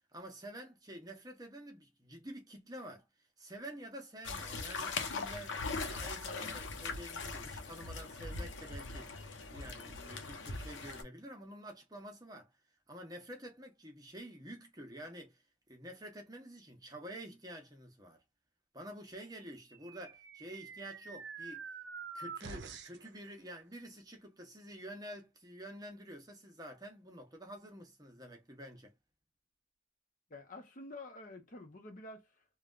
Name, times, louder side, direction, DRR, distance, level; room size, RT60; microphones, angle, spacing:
voice 1, 0.1-3.1 3.4-12.5 12.9-15.4 15.7-18.2 18.7-21.6 22.1-28.9, right 1 dB, 20° right, 0.8 m, -49 dB
sound 1, 4.2-11.0, left 4 dB, 75° left, 0.8 m, -41 dB
sound 2, 19.5-23.1, right 5 dB, 60° right, 0.6 m, -47 dB
voice 2, 30.3-32.4, left 2 dB, 45° left, 0.8 m, -49 dB
3.2 x 2.3 x 2.3 m
head